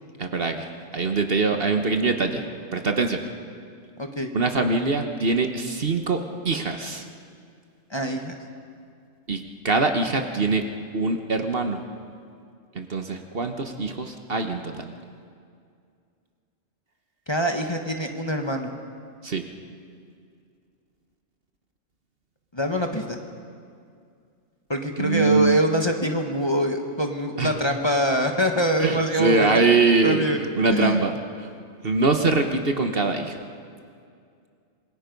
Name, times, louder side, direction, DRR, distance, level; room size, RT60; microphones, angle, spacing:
voice 1, 0.2-2.4 2.7-3.2 4.3-7.1 9.3-10.7 10.9-11.8 12.7-14.9 19.2-19.4 25.0-25.6 27.4-27.5 28.8-31.1 31.8-33.4, right 3 dB, 50° right, 6 dB, 1.3 m, -23 dB
voice 2, 4.0-4.3 7.9-8.4 17.3-18.7 22.5-23.2 24.7-29.6 30.0-30.4 30.7-31.0, equal, 20° left, 3 dB, 1.3 m, -24 dB
27.0 x 21.5 x 5.3 m, 2.3 s
omnidirectional pair, 1.3 m